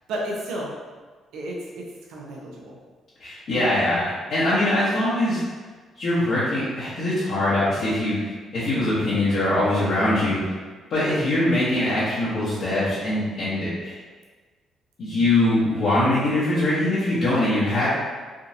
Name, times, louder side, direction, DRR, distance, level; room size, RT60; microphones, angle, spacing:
voice 1, 0.1-0.7 1.3-2.8 11.0-11.2, right 1 dB, 85° right, -3 dB, 0.6 m, -33 dB
voice 2, 3.2-4.0 4.3-5.4 6.0-10.5 10.9-14.0 15.0-17.9, left 1 dB, 65° left, -11 dB, 1.0 m, -22 dB
3.6 x 2.5 x 2.8 m, 1.4 s
cardioid pair, 90°, 0 cm